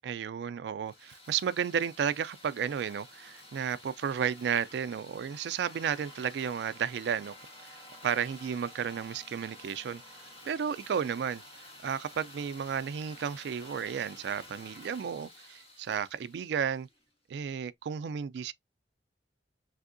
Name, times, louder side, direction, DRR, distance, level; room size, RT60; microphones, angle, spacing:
voice 1, 0.0-7.3 8.0-10.0 10.4-11.4 11.8-16.9 17.3-18.5, right 7 dB, 70° right, 0.3 m, -33 dB
sound 1, 0.8-17.0, left 1 dB, 35° left, 1.3 m, -51 dB
3.4 x 2.7 x 2.5 m
head